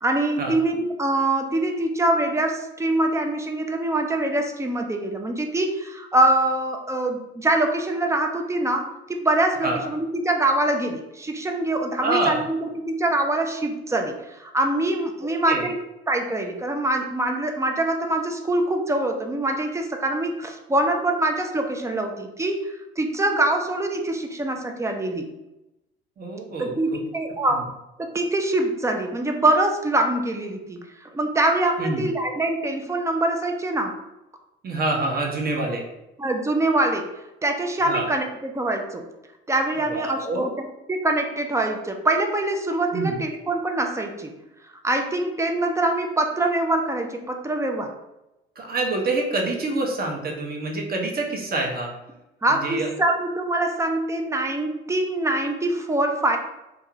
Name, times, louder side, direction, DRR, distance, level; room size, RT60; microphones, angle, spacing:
voice 1, 0.0-15.8 16.1-25.3 26.6-27.7 28.0-34.0 36.2-37.1 37.4-39.1 39.5-40.5 40.9-44.3 44.8-47.9 52.4-56.4, right 2 dB, 10° right, 3 dB, 0.3 m, -24 dB
voice 2, 12.0-12.4 15.5-15.7 26.2-27.0 27.5-27.6 31.8-32.0 34.6-35.8 37.8-38.1 39.9-40.5 42.9-43.2 48.6-51.9 52.5-52.9, right 2 dB, 30° right, 1 dB, 0.7 m, -26 dB
2.4 x 2.3 x 2.9 m, 0.94 s
hypercardioid pair, 60°, 30 cm